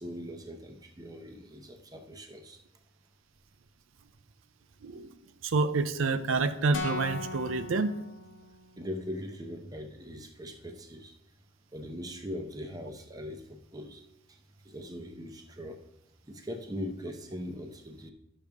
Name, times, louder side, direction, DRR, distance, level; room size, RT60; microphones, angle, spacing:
voice 1, 0.0-2.6 8.8-11.1 11.7-14.0 14.6-15.8 16.3-18.1, equal, 20° right, 5 dB, 0.7 m, -40 dB
voice 2, 4.8-5.1 5.4-7.9, right 3 dB, 85° right, 10 dB, 0.5 m, -28 dB
sound 1, 6.7-8.8, left 3 dB, 85° left, 1.2 m, -39 dB
12.0 x 6.7 x 3.5 m, 0.83 s
head